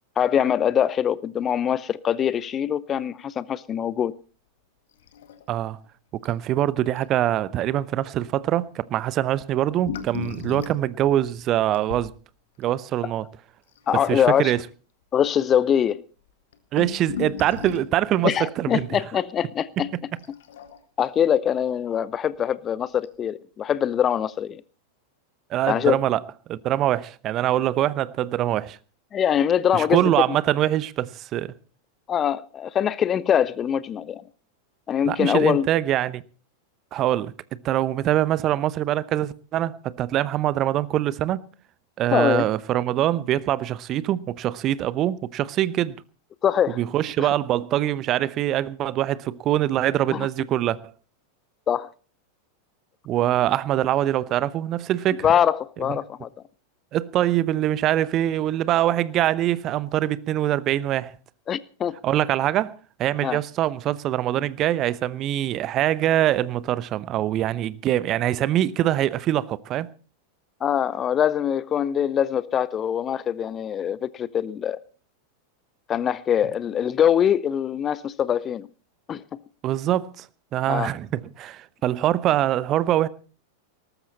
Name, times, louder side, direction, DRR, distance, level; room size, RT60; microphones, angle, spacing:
voice 1, 0.2-4.1 13.9-14.5 15.1-16.0 18.2-19.9 21.0-24.6 25.7-26.0 29.1-30.1 32.1-34.2 34.9-35.7 42.1-42.4 46.4-46.8 47.2-47.3 50.1-50.3 51.7-51.9 55.2-56.3 61.5-62.0 63.2-63.4 70.6-74.8 75.9-78.7 79.1-79.2 80.7-80.9, left 9 dB, 25° left, 0.6 m, -23 dB
sound 1, 5.0-5.6 5.8-5.9 6.2-6.4 7.0-7.1 9.5-12.1 13.8-14.5 15.3-15.4 15.6-15.7 16.3-18.0 20.2-21.1 22.3-22.4 23.0-23.1, left 9 dB, 60° left, 1.8 m, -36 dB
voice 2, 5.5-5.8 6.2-12.1 12.6-13.3 14.1-14.6 16.7-19.0 25.5-26.2 26.5-28.8 29.7-31.5 35.0-36.2 36.9-37.3 37.6-41.4 42.0-46.0 46.8-50.8 53.0-55.3 55.9-56.0 56.9-61.1 62.0-69.9 79.6-80.3 80.5-83.1, right 13 dB, 35° right, 0.8 m, -24 dB
19.0 x 14.0 x 4.2 m
figure-of-eight pair, 90°, 0 cm